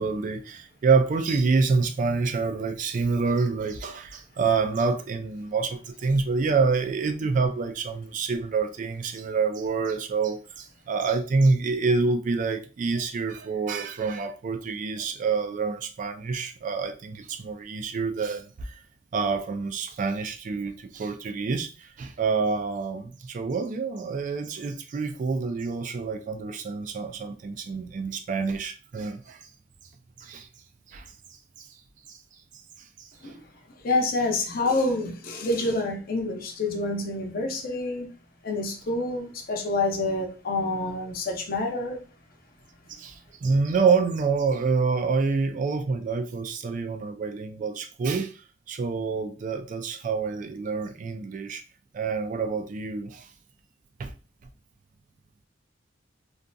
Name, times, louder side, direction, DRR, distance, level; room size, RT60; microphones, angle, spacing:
voice 1, 0.0-18.4 19.1-21.7 22.0-29.4 30.2-30.5 30.9-31.0 33.0-33.1 43.0-43.1 43.4-48.3 48.7-51.6 51.9-53.2 54.0-54.1, right 4 dB, 40° right, 0.3 m, -27 dB
voice 2, 33.8-38.1 38.4-42.0, left 2 dB, 50° left, 0.6 m, -27 dB
2.6 x 2.5 x 2.2 m
head